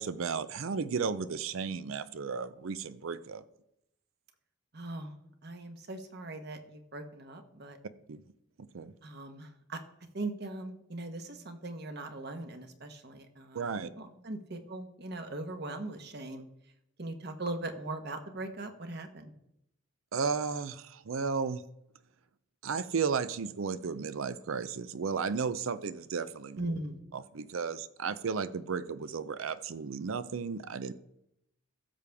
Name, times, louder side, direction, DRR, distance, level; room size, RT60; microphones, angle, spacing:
voice 1, 0.0-3.4 8.1-8.2 8.7-8.9 13.5-13.9 20.1-21.6 22.6-26.6 27.1-30.9, right 5 dB, 80° right, 14 dB, 0.5 m, -34 dB
voice 2, 4.7-5.1 5.4-7.8 9.0-9.8 10.1-13.7 14.0-16.4 17.0-19.3 26.6-27.0, right 2 dB, 50° right, 7 dB, 1.1 m, -40 dB
15.5 x 6.8 x 3.5 m, 0.81 s
head